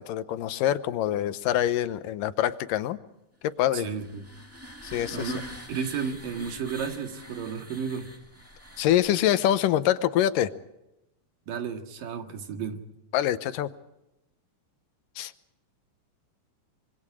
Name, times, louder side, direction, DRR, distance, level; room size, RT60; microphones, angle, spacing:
voice 1, 0.0-3.0 3.4-3.9 4.8-5.3 8.8-10.5 13.1-13.7 15.2-15.3, left 12 dB, 85° left, 13 dB, 2.5 m, -25 dB
sound 1, 3.7-9.5, equal, 5° right, 1.1 m, -44 dB
voice 2, 3.7-4.3 5.1-5.4 5.7-8.1 11.5-12.8, right 6 dB, 80° right, 5 dB, 3.6 m, -33 dB
25.5 x 24.0 x 4.9 m, 0.90 s
omnidirectional pair, 3.8 m